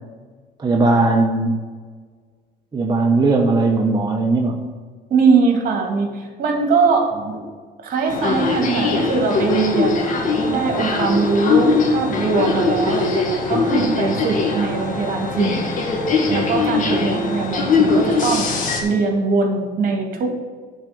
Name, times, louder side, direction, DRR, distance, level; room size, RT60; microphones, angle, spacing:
voice 1, 0.6-1.6 2.7-4.6 7.2-7.3 13.5-13.8 16.2-16.7, right 3 dB, 25° right, 1 dB, 0.9 m, -19 dB
voice 2, 5.1-7.1 7.8-10.1 10.4-15.7 16.2-20.3, right 4 dB, 55° right, 1 dB, 2.6 m, -21 dB
sound 1, 8.1-18.8, left 3 dB, 55° left, 1.8 m, -21 dB
10.0 x 4.5 x 7.6 m, 1.5 s
cardioid pair, 110°, 17 cm